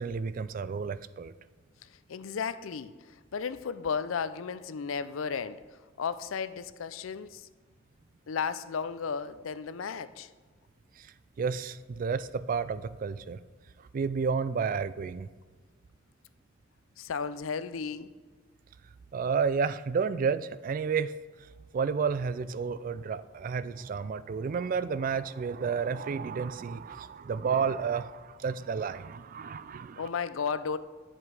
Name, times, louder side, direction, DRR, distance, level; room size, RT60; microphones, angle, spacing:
voice 1, 0.0-1.3 11.0-11.1 11.4-13.4 13.9-15.3 19.1-21.1 21.7-30.1, right 5 dB, 45° right, 16 dB, 0.3 m, -31 dB
voice 2, 2.1-5.6 6.0-7.5 8.3-10.3 17.0-18.1 30.0-30.8, left 6 dB, 85° left, 14 dB, 0.5 m, -34 dB
9.8 x 7.6 x 4.8 m, 1.4 s
head